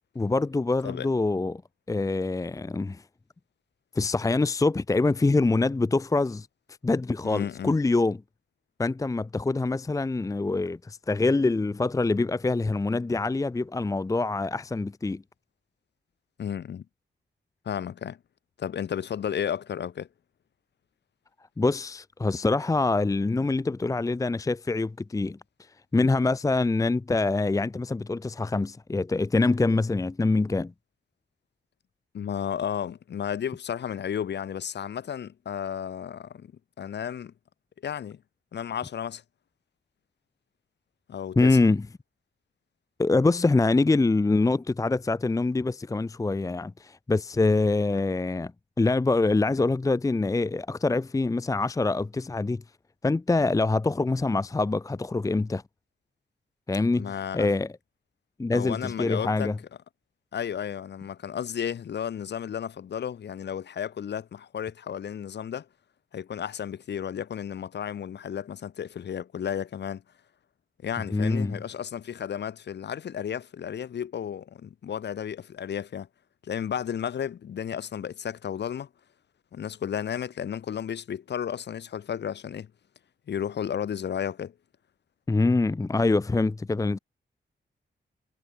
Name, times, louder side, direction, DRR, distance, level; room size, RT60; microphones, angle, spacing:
voice 1, 0.2-1.6 1.9-3.0 4.0-6.5 6.8-8.2 8.8-15.2 21.6-25.4 25.9-30.7 41.4-41.9 43.0-48.5 48.8-52.6 53.0-55.6 56.7-57.7 58.4-59.6 71.1-71.6 85.3-87.0, left 3 dB, 15° left, 0.7 m, -25 dB
voice 2, 7.2-7.7 16.4-16.8 17.6-18.2 18.6-20.1 32.1-36.5 36.8-37.3 37.8-38.2 38.5-39.2 41.1-41.6 47.9-48.0 57.0-57.5 58.5-59.5 60.3-65.7 66.1-70.0 70.8-76.1 76.4-78.9 79.5-82.7 83.3-84.5, left 8 dB, 60° left, 1.0 m, -33 dB
wide cardioid pair, 140°, 20 cm